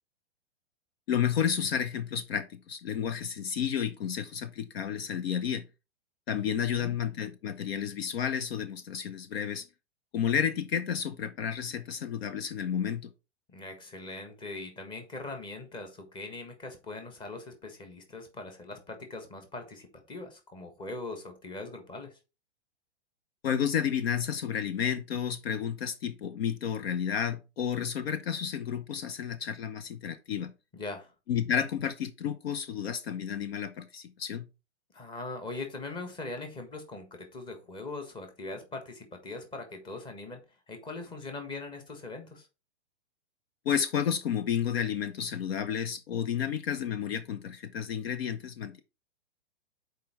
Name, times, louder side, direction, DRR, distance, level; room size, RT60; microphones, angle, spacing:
voice 1, 1.1-5.7 6.3-9.7 10.1-13.1 23.4-30.5 31.3-34.5 43.6-48.8, left 8 dB, 55° left, 0.9 m, -31 dB
voice 2, 13.5-22.2 30.7-31.1 34.9-40.4 40.7-42.5, left 3 dB, 15° left, 1.4 m, -41 dB
6.7 x 4.6 x 4.7 m
hypercardioid pair, 150°, 35 cm